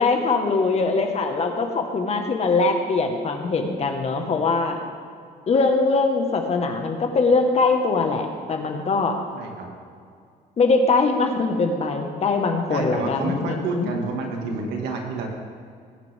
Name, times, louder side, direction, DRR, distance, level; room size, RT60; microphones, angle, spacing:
voice 1, 0.0-4.8 5.5-9.2 10.6-13.9, left 3 dB, 40° left, 4 dB, 1.6 m, -22 dB
voice 2, 9.3-9.7 12.7-15.3, right 3 dB, 85° right, 1 dB, 2.3 m, -28 dB
19.5 x 9.7 x 3.7 m, 2.2 s
cardioid pair, 110°, 17 cm